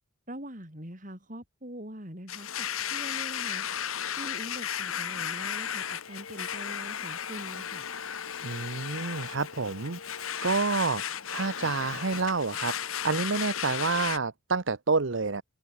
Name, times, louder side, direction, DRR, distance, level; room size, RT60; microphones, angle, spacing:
voice 1, 0.3-3.6 4.2-7.9, right 1 dB, 40° right, 7.2 m, -43 dB
Domestic sounds home sounds, 2.3-14.2, left 9 dB, 85° left, 1.5 m, -35 dB
voice 2, 8.4-11.0 11.3-15.4, right 4 dB, 65° right, 1.0 m, -29 dB
head